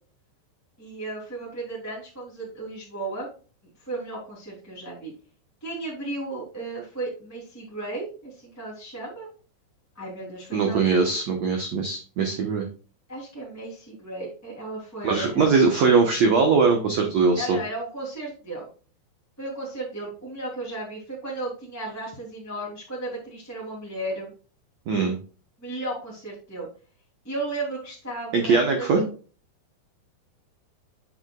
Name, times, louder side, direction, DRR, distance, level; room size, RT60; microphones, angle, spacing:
voice 1, 0.8-3.3 3.8-5.1 5.6-9.3 9.9-11.1 13.1-15.5 17.3-18.7 19.4-24.3 25.6-26.7 27.2-29.0, right 2 dB, 5° left, -5 dB, 2.3 m, -34 dB
voice 2, 10.5-12.6 15.0-17.6 24.9-25.2 28.3-29.0, right 4 dB, 80° right, 2 dB, 1.5 m, -21 dB
8.2 x 7.9 x 2.4 m, 0.36 s
omnidirectional pair, 4.9 m